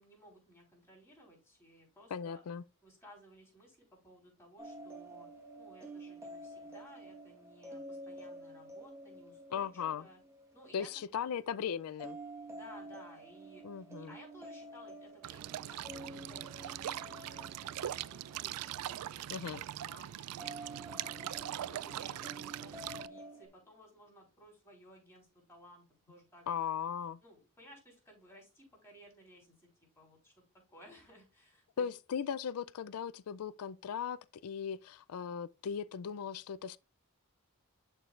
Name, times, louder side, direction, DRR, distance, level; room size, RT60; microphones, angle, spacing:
voice 1, 0.0-2.4 2.8-5.3 5.6-10.2 10.5-11.3 12.5-20.7 21.1-26.9 27.2-29.7 30.0-30.3 30.7-31.9, equal, 10° left, 3.7 m, -58 dB
voice 2, 2.1-2.6 9.5-10.1 10.7-12.2 13.6-14.1 19.3-19.6 26.5-27.2 31.8-36.8, left 7 dB, 80° left, 0.4 m, -38 dB
sound 1, 4.6-11.4 12.0-19.6 20.4-23.5, right 1 dB, 15° right, 1.3 m, -49 dB
sound 2, 15.2-23.1, right 12 dB, 85° right, 0.3 m, -41 dB
sound 3, 20.5-24.3, left 2 dB, 35° left, 1.6 m, -61 dB
11.0 x 4.6 x 2.4 m
head